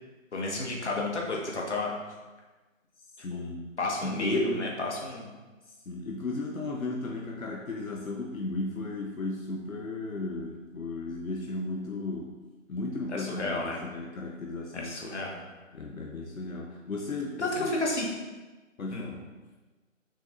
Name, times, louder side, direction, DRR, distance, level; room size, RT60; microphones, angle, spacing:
voice 1, 0.3-1.9 3.3-3.4 3.8-5.3 13.1-13.8 14.7-15.4 17.4-18.1 18.9-19.1, left 2 dB, 55° left, -2 dB, 1.6 m, -31 dB
voice 2, 3.2-3.7 4.0-4.6 5.9-12.4 12.7-14.9 15.7-17.8 18.8-19.3, left 3 dB, 85° left, -1 dB, 1.0 m, -35 dB
7.0 x 5.7 x 2.6 m, 1.2 s
figure-of-eight pair, 160°, 40 cm